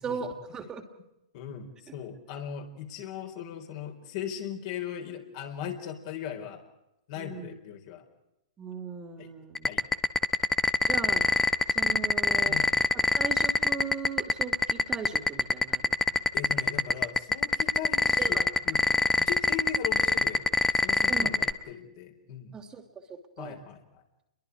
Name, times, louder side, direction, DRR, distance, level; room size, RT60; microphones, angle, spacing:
voice 1, 0.0-0.8 7.2-7.6 8.6-9.7 10.9-11.3 11.7-12.6 12.9-16.3 18.2-18.5 21.1-21.4 22.5-23.6, right 5 dB, 20° right, 4 dB, 2.7 m, -38 dB
voice 2, 1.3-6.6 7.1-8.0 9.2-9.3 9.7-9.8 12.5-12.7 16.3-18.8 19.2-20.5 20.8-22.5 23.4-24.0, left 8 dB, 50° left, 3 dB, 4.4 m, -38 dB
sound 1, 9.6-21.5, left 3 dB, 10° left, 1.0 m, -22 dB
29.5 x 23.0 x 4.9 m, 0.86 s
hypercardioid pair, 115°, 3 cm